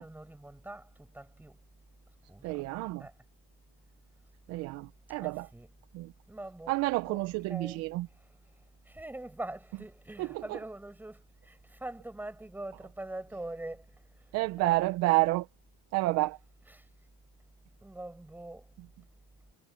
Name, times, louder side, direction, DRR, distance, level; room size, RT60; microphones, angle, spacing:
voice 1, 0.0-1.6 2.3-2.6 3.0-3.1 5.2-5.7 6.3-6.7 7.1-7.2 7.5-7.8 8.2-8.3 8.8-14.0 14.6-14.8 16.8-16.9 17.8-18.7, right 1 dB, 5° right, 7.8 m, -43 dB
voice 2, 2.4-3.1 4.5-5.5 5.9-6.1 6.7-8.1 10.2-10.6 14.3-15.5 15.9-16.4, right 20 dB, 55° right, 0.9 m, -29 dB
supercardioid pair, 130°, 31 cm